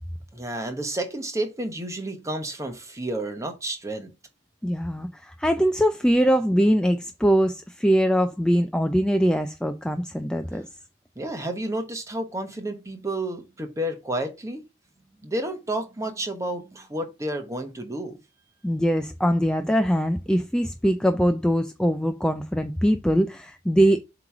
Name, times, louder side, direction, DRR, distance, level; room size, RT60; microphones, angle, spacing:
voice 1, 0.3-4.1 10.5-10.6 11.2-14.6 15.2-18.2, right 1 dB, 15° right, 1.1 m, -31 dB
voice 2, 4.6-10.7 18.6-24.0, equal, 5° left, 0.3 m, -22 dB
7.7 x 3.0 x 4.8 m
head